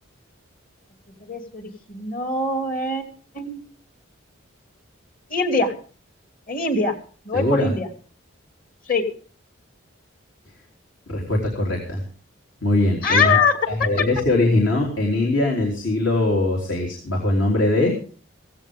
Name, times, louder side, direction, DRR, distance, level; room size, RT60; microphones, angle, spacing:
voice 1, 1.2-3.0 3.3-3.6 5.3-5.7 6.5-6.9 7.2-7.9 8.9-9.0 13.0-13.6, left 4 dB, 45° left, 5 dB, 2.7 m, -22 dB
voice 2, 7.3-7.7 11.1-12.0 12.6-13.4 13.7-17.9, left 2 dB, 70° left, 0 dB, 3.6 m, -21 dB
16.5 x 16.0 x 3.7 m, 0.41 s
head